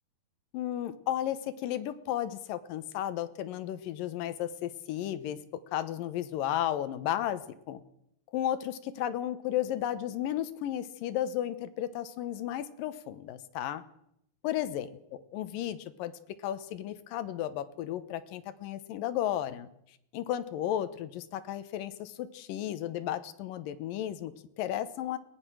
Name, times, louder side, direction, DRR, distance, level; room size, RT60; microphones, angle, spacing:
voice 1, 0.5-5.4 5.7-7.8 8.3-13.8 14.4-16.1 16.4-19.7 20.1-25.2, left 11 dB, 70° left, 11 dB, 2.5 m, -34 dB
22.5 x 18.5 x 6.3 m, 0.75 s
omnidirectional pair, 4.6 m